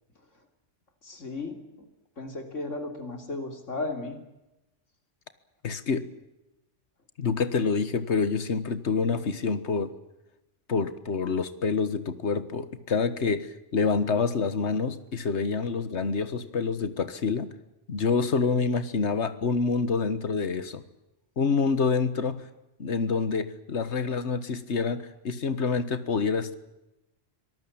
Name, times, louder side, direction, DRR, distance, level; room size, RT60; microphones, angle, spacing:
voice 1, 1.0-1.9 2.2-4.2, left 2 dB, 85° left, 6 dB, 3.7 m, -35 dB
voice 2, 5.6-6.1 7.2-9.9 10.7-17.5 17.9-20.8 21.4-22.4 22.8-26.5, left 5 dB, 65° left, 13 dB, 1.7 m, -27 dB
25.0 x 19.0 x 8.8 m, 0.94 s
omnidirectional pair, 1.2 m